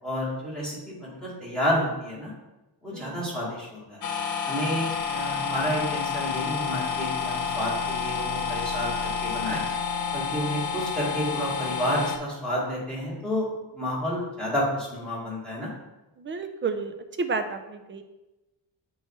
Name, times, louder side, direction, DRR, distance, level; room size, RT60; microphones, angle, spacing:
voice 1, 0.0-2.3 2.8-4.0 4.5-9.6 10.1-13.5 13.7-15.7, equal, ahead, -7 dB, 2.3 m, -30 dB
sound 1, 4.0-12.2, left 6 dB, 45° left, 0.6 m, -29 dB
voice 2, 16.2-18.0, right 4 dB, 30° right, 7 dB, 0.4 m, -31 dB
7.9 x 3.1 x 4.4 m, 1.0 s
wide cardioid pair, 175°, 45 cm